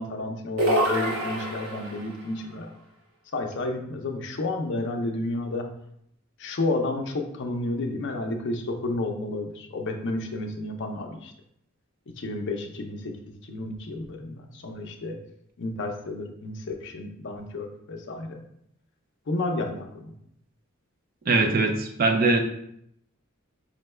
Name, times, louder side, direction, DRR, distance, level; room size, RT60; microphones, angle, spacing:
voice 1, 0.0-2.7 3.3-5.6 6.4-11.3 12.1-13.1 13.5-15.2 15.6-18.4 19.3-20.1, left 2 dB, 60° left, 4 dB, 0.5 m, -31 dB
sound 1, 0.6-2.1, right 1 dB, 65° right, 1.1 m, -26 dB
voice 2, 21.3-22.4, right 3 dB, 45° right, 4 dB, 0.5 m, -21 dB
5.0 x 2.2 x 3.1 m, 0.72 s
head